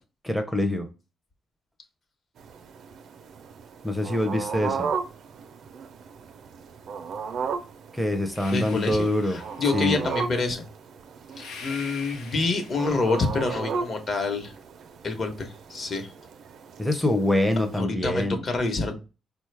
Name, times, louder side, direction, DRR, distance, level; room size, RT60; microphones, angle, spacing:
voice 1, 0.2-0.9 3.8-4.9 7.9-9.4 9.7-10.1 16.8-18.4, left 1 dB, ahead, 5 dB, 0.5 m, -25 dB
sound 1, 2.4-17.8, right 5 dB, 65° right, 0.4 m, -36 dB
sound 2, 8.3-9.9 11.3-13.4, left 5 dB, 85° left, 0.8 m, -45 dB
voice 2, 8.5-10.6 11.4-14.5 15.0-16.1 17.7-19.0, left 3 dB, 45° left, 5 dB, 0.9 m, -27 dB
3.9 x 2.3 x 3.2 m, 0.31 s
cardioid pair, 90°, 0 cm